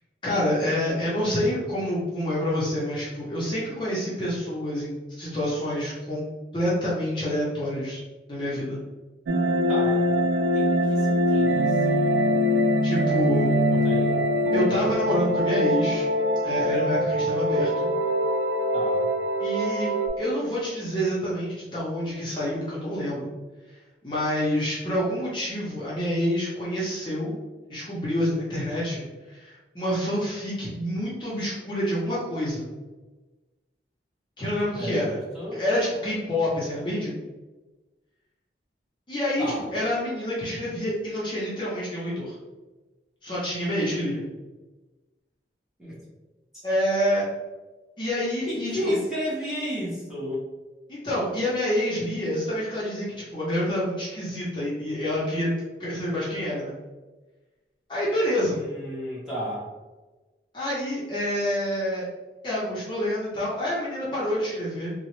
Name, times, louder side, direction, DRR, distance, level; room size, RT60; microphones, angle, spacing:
voice 1, 0.2-6.2 6.5-8.0 8.3-8.8 12.8-13.5 14.5-16.0 16.4-17.9 19.4-19.9 20.2-23.3 24.0-27.4 27.7-32.7 34.4-35.2 35.5-37.1 39.1-39.5 39.7-42.3 43.2-44.2 46.6-47.2 48.0-49.0 50.9-56.7 57.9-58.6 60.5-62.1 62.4-64.9, equal, 25° left, -8 dB, 0.6 m, -27 dB
sound 1, 9.3-20.1, equal, 80° right, 0.3 m, -23 dB
voice 2, 9.7-10.1 10.5-12.2 13.3-14.2 18.7-19.1 34.7-35.6 39.4-39.7 45.8-46.0 48.5-50.4 58.4-59.7, equal, 5° right, -8 dB, 0.8 m, -33 dB
2.9 x 2.0 x 3.0 m, 1.2 s
head